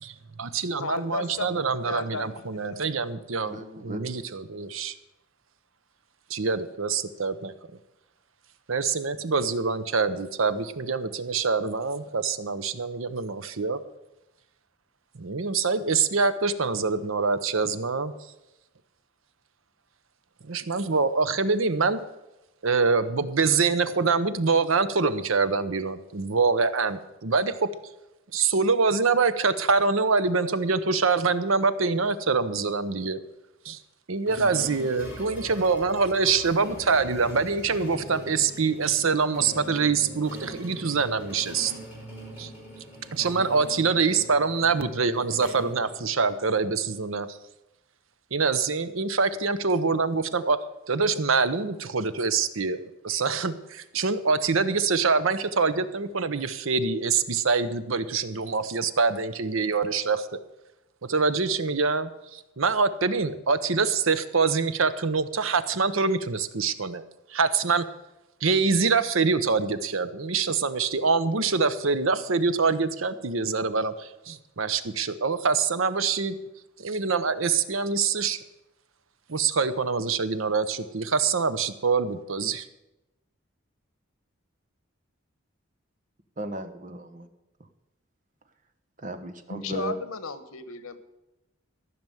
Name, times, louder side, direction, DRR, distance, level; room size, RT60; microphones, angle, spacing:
voice 1, 0.0-4.9 6.3-7.5 8.7-13.8 15.2-18.1 20.4-22.0 22.6-27.6 28.3-33.2 33.6-33.8 34.1-41.7 42.4-42.5 43.1-47.4 48.3-50.6 50.9-60.3 61.1-67.0 67.3-67.8 68.4-76.4 76.8-78.4 79.3-82.6, right 4 dB, 70° right, 12 dB, 0.8 m, -25 dB
voice 2, 0.8-2.8 89.5-91.0, left 4 dB, 85° left, 12 dB, 1.1 m, -34 dB
voice 3, 3.4-4.0 86.4-87.3 89.0-89.9, right 2 dB, 35° right, 8 dB, 1.1 m, -36 dB
sound 1, 34.3-46.5, left 1 dB, 5° right, 5.0 m, -42 dB
14.0 x 6.0 x 9.2 m, 0.95 s
head